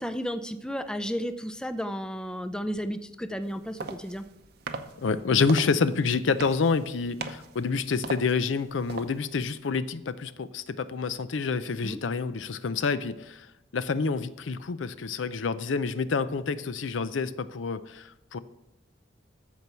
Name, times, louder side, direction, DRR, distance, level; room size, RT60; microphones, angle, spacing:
voice 1, 0.0-4.2 11.8-12.0, equal, 5° left, 10 dB, 0.4 m, -33 dB
sound 1, 3.4-9.5, right 4 dB, 55° right, 0.7 m, -41 dB
voice 2, 5.0-13.5 13.7-18.4, left 4 dB, 75° left, 14 dB, 0.5 m, -28 dB
13.5 x 4.6 x 6.8 m, 0.91 s
head